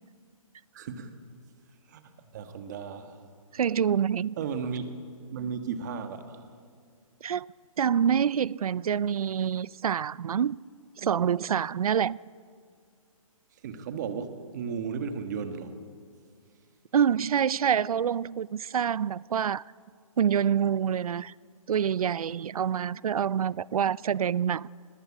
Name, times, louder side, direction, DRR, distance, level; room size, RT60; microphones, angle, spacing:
voice 1, 0.7-1.1 1.9-3.2 4.4-4.8 5.3-6.5 13.6-15.8, right 6 dB, 30° right, 1.5 m, -35 dB
voice 2, 3.5-4.4 7.2-7.5 7.8-10.6 11.0-12.2 16.9-19.6 20.2-21.3 21.7-24.7, right 8 dB, 90° right, 0.5 m, -26 dB
22.0 x 19.0 x 8.4 m
hypercardioid pair, 170°, 18 cm